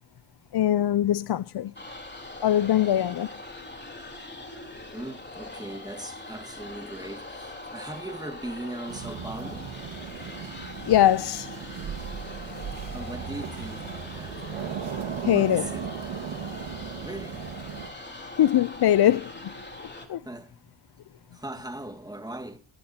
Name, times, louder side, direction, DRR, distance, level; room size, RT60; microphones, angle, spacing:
voice 1, 0.5-1.7 2.4-3.3 10.9-11.5 15.3-15.7 18.4-19.3 20.1-20.2, left 12 dB, 50° left, 0.6 m, -21 dB
sound 1, 1.7-20.1, left 2 dB, 20° left, 3.7 m, -42 dB
voice 2, 4.9-9.7 12.9-14.4 15.2-15.9 17.0-17.5 20.2-20.6 21.3-22.6, right 1 dB, 10° right, 2.1 m, -39 dB
sound 2, 8.9-17.9, right 8 dB, 70° right, 1.9 m, -37 dB
28.0 x 11.5 x 2.8 m
cardioid pair, 70°, 49 cm